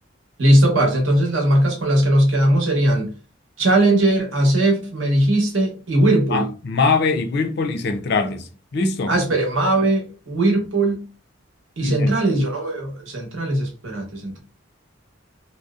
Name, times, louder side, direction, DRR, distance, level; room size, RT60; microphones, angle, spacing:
voice 1, 0.4-3.1 3.6-6.5 9.1-11.0 11.8-14.4, right 1 dB, 70° right, 0.9 m, -19 dB
voice 2, 6.3-9.2 11.8-12.1, left 4 dB, 55° left, 0.4 m, -22 dB
2.6 x 2.0 x 2.3 m
head